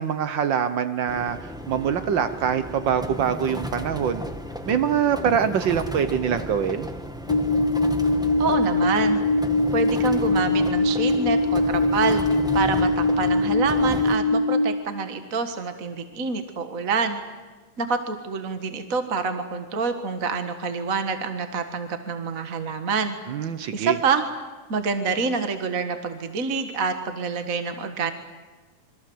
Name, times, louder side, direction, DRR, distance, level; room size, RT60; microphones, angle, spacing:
voice 1, 0.0-4.3 4.7-6.9 23.3-24.0, right 8 dB, 80° right, 11 dB, 1.0 m, -24 dB
sound 1, 1.1-14.2, equal, 5° right, 0.5 m, -35 dB
sound 2, 7.3-14.7, left 2 dB, 55° left, 2.5 m, -22 dB
voice 2, 8.4-9.2 9.7-12.2 12.5-17.2 17.8-23.1 23.7-24.2 24.7-28.1, right 5 dB, 40° right, 8 dB, 1.3 m, -27 dB
27.5 x 24.0 x 8.0 m, 1.3 s
omnidirectional pair, 3.6 m